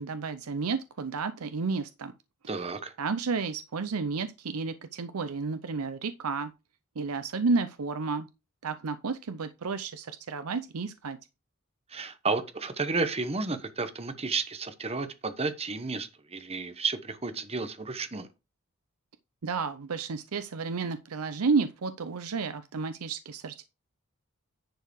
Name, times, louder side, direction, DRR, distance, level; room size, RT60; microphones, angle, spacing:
voice 1, 0.0-2.1 3.0-6.5 7.0-8.3 8.6-11.2 19.4-23.6, right 4 dB, 85° right, 0.6 m, -31 dB
voice 2, 2.5-2.9 11.9-18.3, right 4 dB, 30° right, 1.0 m, -32 dB
10.5 x 4.7 x 4.7 m
head